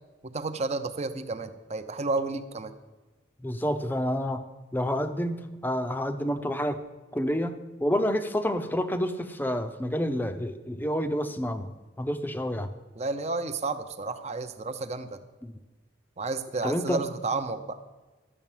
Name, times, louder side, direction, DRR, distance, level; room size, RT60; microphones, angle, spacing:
voice 1, 0.2-2.7 13.0-15.2 16.2-17.8, right 3 dB, 35° right, 10 dB, 0.7 m, -31 dB
voice 2, 3.4-4.4 4.7-6.8 7.1-7.5 7.8-11.7 12.0-12.7 15.4-15.5 16.6-17.0, equal, 10° left, 9 dB, 0.6 m, -28 dB
12.5 x 6.9 x 7.3 m, 1.3 s
head